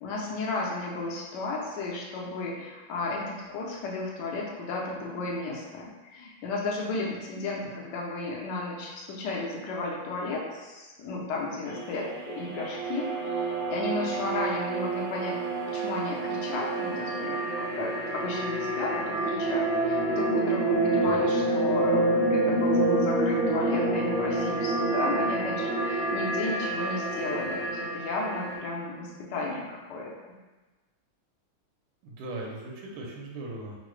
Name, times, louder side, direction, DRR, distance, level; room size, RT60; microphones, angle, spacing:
voice 1, 0.0-15.4 15.7-30.1, left 3 dB, 65° left, -3 dB, 1.1 m, -34 dB
sound 1, 11.7-28.6, right 2 dB, 65° right, 0.9 m, -28 dB
voice 2, 20.9-21.5 32.0-33.8, right 2 dB, 85° right, -1 dB, 1.5 m, -39 dB
3.8 x 2.1 x 3.1 m, 1.2 s
omnidirectional pair, 2.3 m